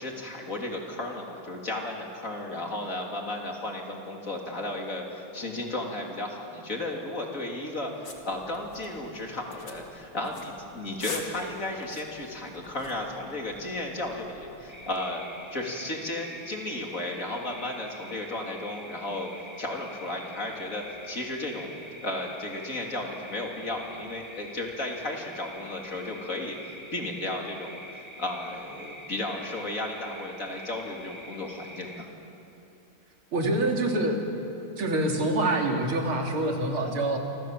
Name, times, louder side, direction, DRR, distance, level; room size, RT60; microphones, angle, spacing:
voice 1, 0.0-15.3 15.5-32.1, left 2 dB, 40° left, 0 dB, 3.5 m, -34 dB
sound 1, 8.0-15.0, left 3 dB, 55° left, 3.1 m, -45 dB
sound 2, 14.7-32.1, equal, 5° right, 2.0 m, -46 dB
voice 2, 33.3-34.3 34.8-37.2, right 1 dB, 90° right, 1 dB, 3.7 m, -26 dB
29.0 x 26.0 x 7.6 m, 2.8 s
omnidirectional pair, 2.2 m